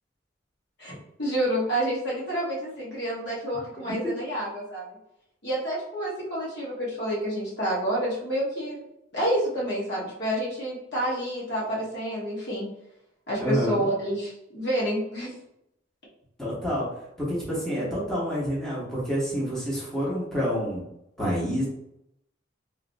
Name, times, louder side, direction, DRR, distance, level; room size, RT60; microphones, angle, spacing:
voice 1, 1.2-4.8 5.4-8.8 9.1-12.7 13.3-15.4, right 1 dB, 60° left, -5 dB, 1.1 m, -28 dB
voice 2, 13.4-13.8 16.4-16.9 17.2-20.8 21.2-21.7, equal, 5° left, -8 dB, 1.1 m, -28 dB
3.0 x 2.7 x 2.6 m, 0.81 s
head